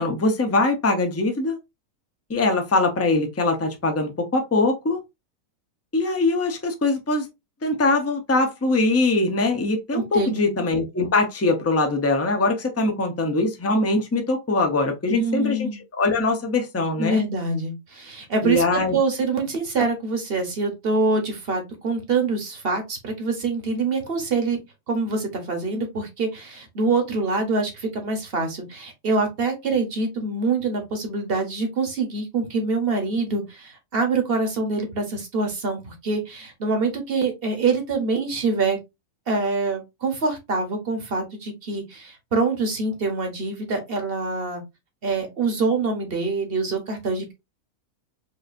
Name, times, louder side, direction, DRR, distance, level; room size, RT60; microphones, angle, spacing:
voice 1, 0.0-1.6 2.3-5.0 5.9-7.3 7.6-15.7 16.0-17.2 18.4-19.0, left 2 dB, 20° left, 0.4 m, -22 dB
voice 2, 9.9-10.4 15.1-15.8 17.0-18.6 18.9-24.6 24.9-38.8 39.3-44.6 45.0-47.3, right 3 dB, 45° right, 1.1 m, -25 dB
4.7 x 2.6 x 2.5 m
omnidirectional pair, 1.6 m